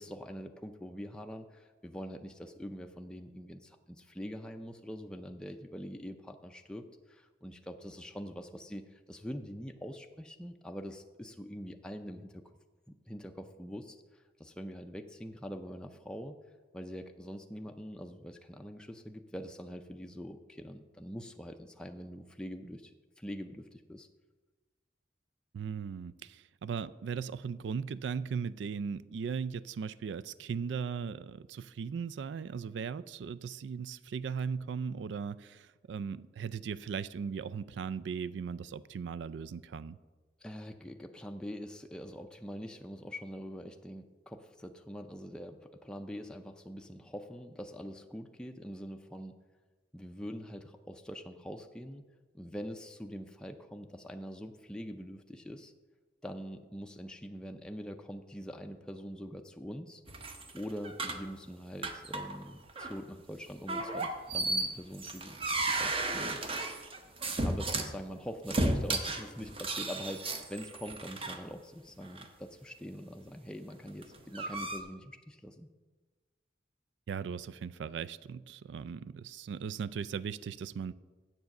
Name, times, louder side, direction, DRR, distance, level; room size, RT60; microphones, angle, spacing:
voice 1, 0.0-12.4 13.1-16.4 16.7-24.1 40.4-49.4 49.9-52.0 52.3-55.7 56.2-60.0 60.5-66.4 67.4-75.7, equal, 5° left, 4 dB, 0.4 m, -44 dB
voice 2, 25.5-40.0 77.1-80.9, right 6 dB, 80° right, 18 dB, 0.3 m, -38 dB
sound 1, 60.1-61.3 61.8-62.4 62.7-63.0 63.7-67.9 68.5-71.4 72.0-72.3 73.9-74.8, right 2 dB, 30° right, 0.8 m, -34 dB
8.1 x 7.2 x 6.4 m, 1.3 s
head